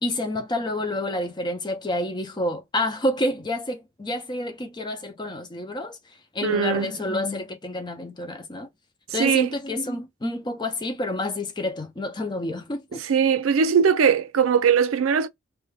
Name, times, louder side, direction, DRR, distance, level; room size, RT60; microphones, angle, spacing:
voice 1, 0.0-6.0 6.3-8.7 9.1-13.0, left 1 dB, 20° left, 0.5 m, -28 dB
voice 2, 6.4-6.9 9.1-9.5 12.9-15.3, right 6 dB, 90° right, 0.4 m, -20 dB
2.6 x 2.2 x 3.2 m
head